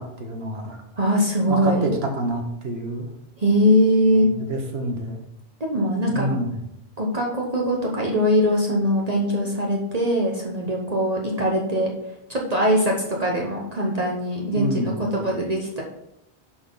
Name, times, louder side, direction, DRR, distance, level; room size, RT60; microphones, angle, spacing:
voice 1, 0.0-0.8 1.5-3.1 4.1-5.2 6.1-6.6 14.5-15.1, right 1 dB, 80° right, 2 dB, 1.6 m, -28 dB
voice 2, 0.9-1.9 3.4-4.3 5.6-6.3 7.0-11.9 12.3-12.9 13.2-15.8, equal, 40° right, -2 dB, 1.2 m, -21 dB
11.0 x 4.3 x 3.9 m, 0.84 s
omnidirectional pair, 1.0 m